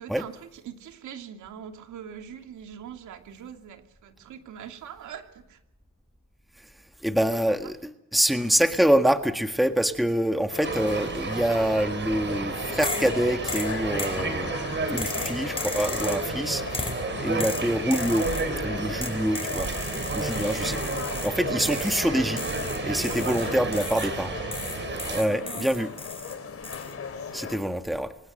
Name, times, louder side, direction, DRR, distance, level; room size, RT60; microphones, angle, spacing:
voice 1, 0.0-5.6 7.3-7.7 8.4-8.6 20.3-20.7 23.1-23.6 25.1-25.9, right 8 dB, 75° right, 5 dB, 2.8 m, -43 dB
voice 2, 7.0-14.5 14.9-16.6 17.2-18.3 18.6-19.7 20.1-21.0 21.2-22.4 22.8-24.4 25.1-25.9 27.3-28.1, equal, ahead, 7 dB, 1.7 m, -25 dB
sound 1, 10.5-27.6, left 5 dB, 50° left, 4.9 m, -37 dB
sound 2, 10.6-25.2, right 4 dB, 40° right, 4.1 m, -32 dB
sound 3, 12.8-13.2 13.5-14.2 15.0-16.3 16.7-17.0 17.4-18.5 19.0-21.3 21.6-22.1 22.4-24.2 24.5-26.3 26.6-26.9, left 2 dB, 20° left, 4.3 m, -35 dB
25.0 x 19.5 x 6.6 m, 0.85 s
cardioid pair, 90°, 30 cm